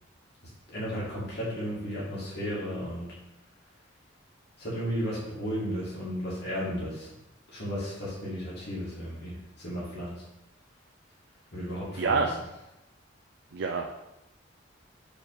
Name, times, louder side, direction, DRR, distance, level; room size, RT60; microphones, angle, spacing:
voice 1, 0.7-3.1 4.6-7.1 7.5-10.2 11.5-12.3, equal, 60° left, -8 dB, 2.3 m, -34 dB
voice 2, 12.0-12.3 13.5-14.0, right 4 dB, 60° right, 3 dB, 0.5 m, -27 dB
4.8 x 4.6 x 4.8 m, 0.95 s
head